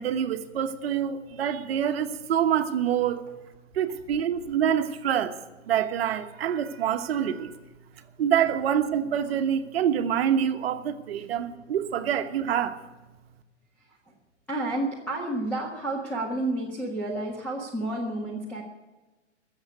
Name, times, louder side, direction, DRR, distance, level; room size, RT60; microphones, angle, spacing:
voice 1, 0.0-3.2 3.7-5.4 5.6-7.6 8.2-12.8, right 9 dB, 55° right, 1.2 m, -26 dB
voice 2, 14.5-18.6, right 2 dB, 5° left, 1.5 m, -30 dB
15.0 x 7.3 x 9.3 m
hypercardioid pair, 145°, 36 cm